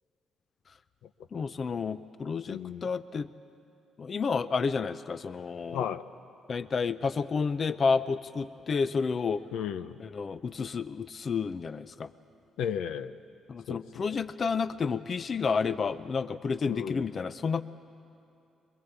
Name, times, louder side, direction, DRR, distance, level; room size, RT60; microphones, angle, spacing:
voice 1, 1.3-3.3 4.0-5.9 6.5-9.4 10.0-12.1 13.5-17.6, left 5 dB, 45° left, 14 dB, 0.6 m, -30 dB
voice 2, 2.5-2.8 5.7-6.0 9.5-10.0 12.6-13.1 13.7-14.2 16.7-17.0, left 8 dB, 85° left, 11 dB, 0.7 m, -34 dB
22.5 x 21.5 x 8.2 m, 2.7 s
cardioid pair, 90°, 0 cm